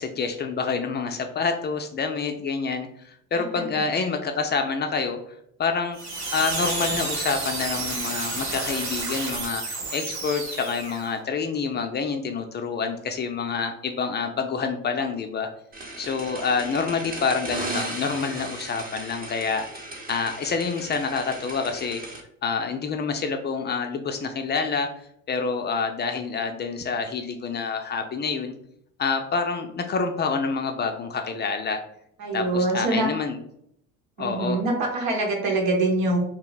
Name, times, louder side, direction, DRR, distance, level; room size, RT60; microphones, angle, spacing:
voice 1, 0.0-5.2 5.6-6.0 6.3-15.5 16.0-19.7 20.1-22.0 22.4-24.9 25.3-28.6 29.0-31.8 32.3-33.4 34.2-34.6, left 5 dB, 30° left, 5 dB, 0.4 m, -27 dB
sound 1, 5.9-11.1, right 3 dB, 50° right, 1.0 m, -30 dB
sound 2, 15.7-22.2, right 2 dB, 25° right, 0.8 m, -36 dB
voice 2, 32.2-33.1 34.2-36.2, right 2 dB, 75° right, 1 dB, 1.0 m, -24 dB
2.3 x 2.0 x 3.9 m, 0.71 s
supercardioid pair, 85°, 35 cm